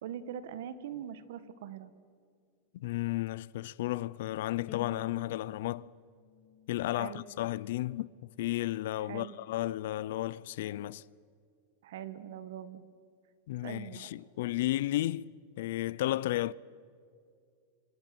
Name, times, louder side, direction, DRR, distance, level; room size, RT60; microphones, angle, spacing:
voice 1, 0.0-1.9 7.0-7.2 9.0-9.4 11.8-12.8 13.6-14.1, right 9 dB, 70° right, 1.8 m, -42 dB
voice 2, 2.7-5.9 6.7-11.0 13.5-16.5, left 15 dB, 65° left, 0.6 m, -33 dB
Bowed string instrument, 4.7-7.9, left 8 dB, 40° left, 2.8 m, -51 dB
29.5 x 26.0 x 6.2 m
supercardioid pair, 150°, 0 cm